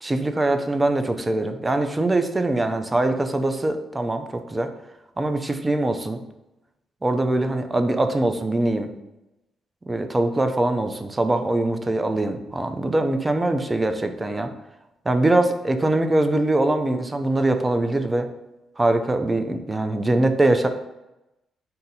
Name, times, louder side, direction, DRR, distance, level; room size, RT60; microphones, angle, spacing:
voice 1, 0.0-4.7 5.2-6.2 7.0-8.9 9.9-14.5 15.1-18.3 18.8-20.7, right 2 dB, 20° right, 7 dB, 0.4 m, -22 dB
4.0 x 2.7 x 4.0 m, 0.95 s
cardioid pair, 90°, 0 cm